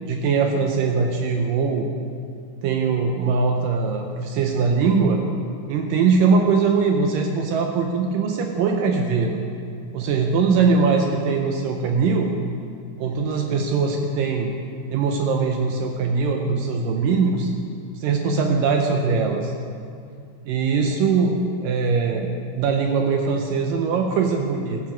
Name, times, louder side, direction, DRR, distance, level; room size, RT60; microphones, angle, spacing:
voice 1, 0.1-1.9 2.6-5.2 5.7-9.4 9.9-12.3 13.0-14.5 14.9-17.5 18.0-19.5 20.5-24.8, right 5 dB, 90° right, 3 dB, 1.9 m, -21 dB
14.0 x 9.6 x 4.4 m, 2.3 s
omnidirectional pair, 4.8 m